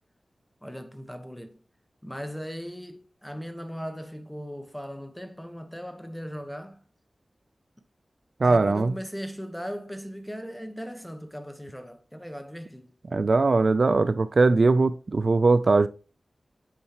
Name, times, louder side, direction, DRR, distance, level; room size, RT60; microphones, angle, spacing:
voice 1, 0.6-1.6 2.0-6.8 8.4-12.9, equal, 5° left, 1.2 m, -38 dB
voice 2, 8.4-8.9 13.1-15.9, right 3 dB, 60° right, 0.4 m, -20 dB
8.5 x 5.5 x 3.0 m
wide cardioid pair, 70°, 0 cm